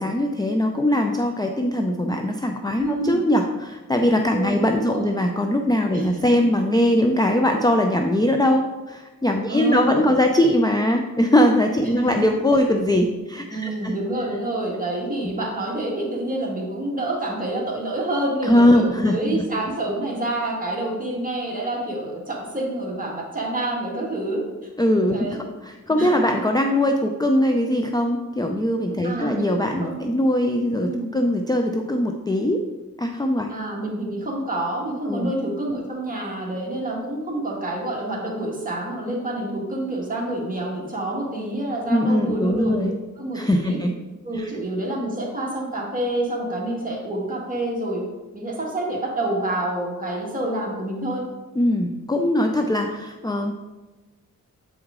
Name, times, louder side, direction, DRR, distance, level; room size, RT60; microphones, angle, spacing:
voice 1, 0.0-13.9 15.2-15.3 18.4-19.4 24.8-32.6 33.0-33.5 35.1-35.3 41.9-42.9 43.3-43.9 44.4-44.5 51.6-53.5, left 1 dB, 15° left, 4 dB, 0.4 m, -21 dB
voice 2, 2.8-3.2 4.3-5.1 5.9-6.4 9.5-10.2 11.8-12.3 13.5-24.7 25.1-25.4 26.0-26.4 29.0-29.4 29.8-30.2 30.8-31.1 33.5-42.8 43.2-43.8 44.2-48.0 48.3-51.2, right 1 dB, 25° right, -3 dB, 1.7 m, -28 dB
8.0 x 4.7 x 3.6 m, 1.2 s
wide cardioid pair, 120°, 31 cm